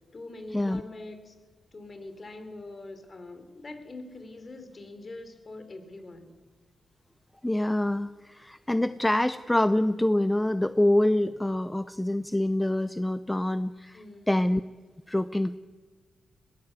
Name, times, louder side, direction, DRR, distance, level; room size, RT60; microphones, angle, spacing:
voice 1, 0.1-1.3 1.7-6.3 13.9-14.4, left 2 dB, 35° left, 9 dB, 3.3 m, -43 dB
voice 2, 7.4-14.6 15.1-15.6, left 1 dB, 10° left, 13 dB, 0.5 m, -26 dB
21.5 x 18.0 x 8.3 m, 1.5 s
cardioid pair, 100°, 0 cm